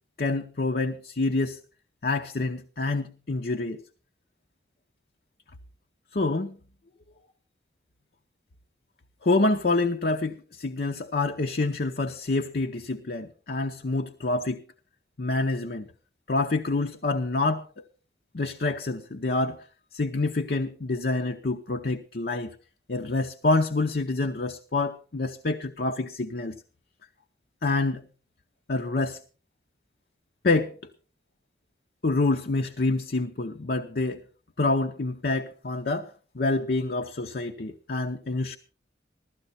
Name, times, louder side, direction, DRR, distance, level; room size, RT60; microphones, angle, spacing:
voice 1, 0.2-1.6 2.0-3.8 6.1-6.6 9.2-14.6 15.2-15.9 16.3-17.8 18.3-19.7 19.9-22.6 22.9-26.6 27.6-28.0 28.7-29.2 30.4-30.9 32.0-34.2 34.6-38.6, left 2 dB, 60° left, 0.8 m, -27 dB
15.5 x 13.5 x 4.2 m
head